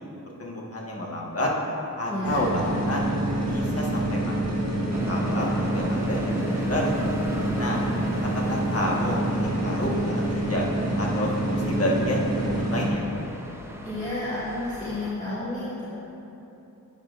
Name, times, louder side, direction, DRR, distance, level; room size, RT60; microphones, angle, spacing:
voice 1, 0.4-1.5 2.0-3.1 3.4-4.6 5.1-7.0 7.6-7.8 8.5-10.7 11.0-13.0, left 1 dB, 45° left, -3 dB, 1.4 m, -29 dB
voice 2, 2.1-2.4 13.8-15.9, left 1 dB, 20° left, -12 dB, 1.9 m, -31 dB
sound 1, 2.2-12.9, right 1 dB, 50° right, 1.6 m, -27 dB
sound 2, 4.9-15.1, equal, 10° right, 0.6 m, -39 dB
11.5 x 8.1 x 2.5 m, 3.0 s
wide cardioid pair, 80°, 33 cm